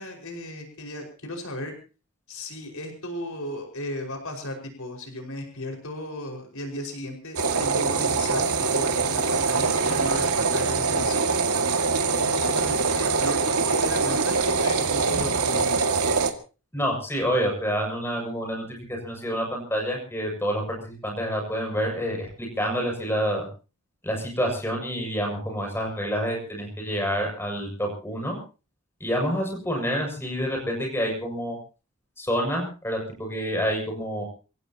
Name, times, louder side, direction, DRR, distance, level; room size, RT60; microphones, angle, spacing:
voice 1, 0.0-1.7 2.3-11.3 12.1-15.8, left 1 dB, 70° left, 2 dB, 5.4 m, -35 dB
sound 1, 7.4-16.3, right 4 dB, 85° right, 2.1 m, -23 dB
voice 2, 16.7-23.5 24.0-28.4 29.0-31.6 32.2-34.2, equal, 10° left, 0 dB, 6.7 m, -28 dB
28.0 x 16.5 x 2.9 m, 0.35 s
head